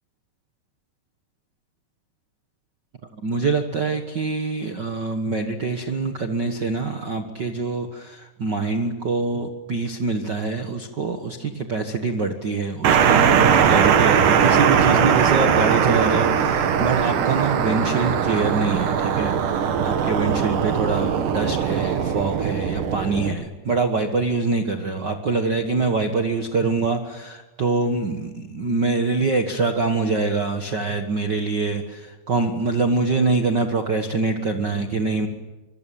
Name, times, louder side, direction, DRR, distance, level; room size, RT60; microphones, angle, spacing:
voice 1, 3.1-35.3, right 3 dB, 80° right, 6 dB, 0.9 m, -24 dB
sound 1, 12.8-23.3, right 7 dB, 60° right, 3.0 m, -20 dB
25.5 x 23.0 x 9.2 m, 1.2 s
omnidirectional pair, 4.5 m